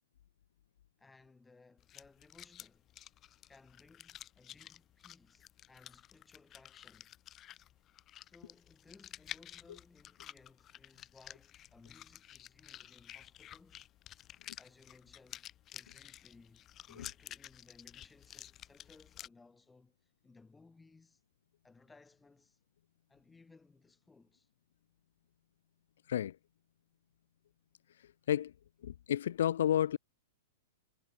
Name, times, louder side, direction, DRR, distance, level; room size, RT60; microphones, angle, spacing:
voice 1, 1.0-2.9 3.5-7.1 8.2-13.9 14.6-21.2 21.6-22.6 23.1-24.5, left 3 dB, 10° left, 7.7 m, -62 dB
sound 1, 1.8-19.3, left 12 dB, 25° left, 0.6 m, -52 dB
voice 2, 28.8-30.0, left 10 dB, 75° left, 0.4 m, -31 dB
hypercardioid pair, 150°, 0 cm